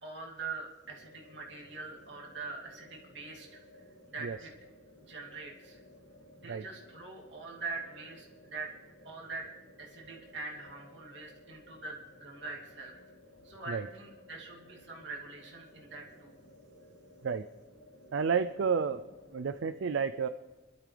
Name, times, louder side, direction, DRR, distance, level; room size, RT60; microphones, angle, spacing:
voice 1, 0.0-3.6 4.1-4.5 5.1-5.8 6.4-8.7 9.0-9.5 9.8-12.9 13.4-16.3, right 3 dB, 65° right, -2 dB, 2.7 m, -43 dB
sound 1, 0.8-19.7, left 1 dB, 65° left, 3.1 m, -57 dB
voice 2, 18.1-19.0 19.3-20.3, right 6 dB, 80° right, 11 dB, 0.4 m, -31 dB
28.0 x 12.5 x 3.4 m, 1.3 s
head